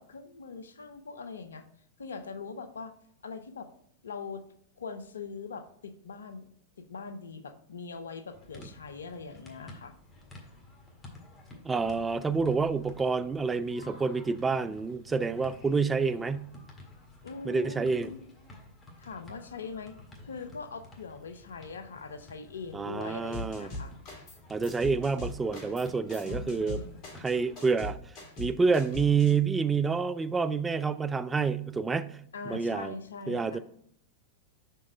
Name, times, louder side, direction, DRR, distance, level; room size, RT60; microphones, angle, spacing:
voice 1, 0.0-1.7 2.0-2.9 3.2-3.7 4.0-4.4 4.8-6.5 6.8-9.9 17.2-18.3 19.0-20.0 20.2-23.9 26.2-27.0 32.3-33.6, left 4 dB, 75° left, 0.6 m, -42 dB
sound 1, 8.3-27.7, left 2 dB, 20° left, 1.7 m, -52 dB
voice 2, 11.6-16.5 17.4-18.1 22.7-23.7 24.5-26.8 27.1-28.0 28.4-32.2 32.5-32.9 33.3-33.6, right 5 dB, 15° right, 0.4 m, -28 dB
sound 2, 23.3-24.4 24.6-29.3, left 1 dB, 45° left, 2.4 m, -40 dB
5.9 x 4.6 x 4.5 m
figure-of-eight pair, 95°, 0 cm